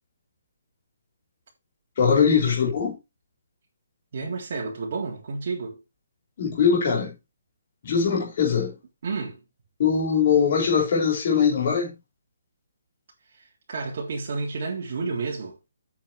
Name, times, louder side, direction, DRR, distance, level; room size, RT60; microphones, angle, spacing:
voice 1, 2.0-3.0 6.4-7.1 7.8-8.8 9.8-11.9, left 6 dB, 35° left, 4.3 m, -21 dB
voice 2, 4.1-5.8 9.0-9.4 13.7-15.6, right 4 dB, 40° right, 3.7 m, -30 dB
8.7 x 6.3 x 4.8 m
hypercardioid pair, 175°, 0 cm